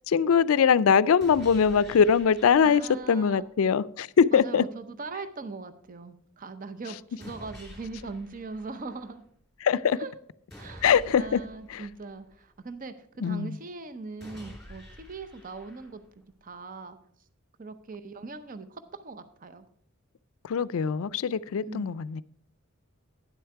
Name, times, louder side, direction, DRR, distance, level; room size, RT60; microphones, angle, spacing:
voice 1, 0.1-2.8 3.1-4.6 9.6-10.0 10.8-11.4 11.7-11.8 13.2-13.5 20.4-22.2, left 7 dB, 75° left, 0.4 m, -22 dB
sound 1, 1.2-3.2 7.2-9.2 10.5-12.5 14.2-16.2, equal, 5° left, 2.8 m, -48 dB
voice 2, 2.6-3.5 4.3-9.2 10.0-10.1 10.6-10.9 11.1-17.0 17.6-19.7 21.7-22.0, right 3 dB, 40° right, 0.6 m, -40 dB
10.5 x 7.9 x 4.7 m
head